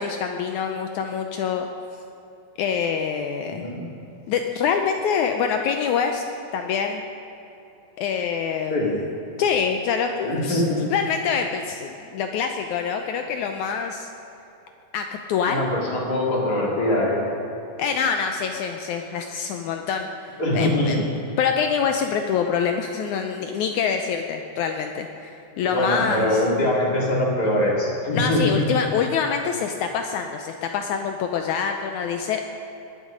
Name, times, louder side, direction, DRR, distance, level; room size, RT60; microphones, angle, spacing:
voice 1, 0.0-1.7 2.6-3.7 4.3-6.2 6.5-7.0 8.0-8.8 9.4-10.6 10.9-14.1 14.9-15.7 17.8-21.1 21.4-26.4 28.1-32.4, left 6 dB, 90° left, 5 dB, 1.7 m, -25 dB
voice 2, 3.5-3.8 8.7-8.9 10.2-10.8 15.4-17.3 20.4-21.0 25.6-28.7, left 1 dB, 30° left, -3 dB, 2.7 m, -23 dB
20.5 x 10.5 x 5.2 m, 2.8 s
omnidirectional pair, 4.2 m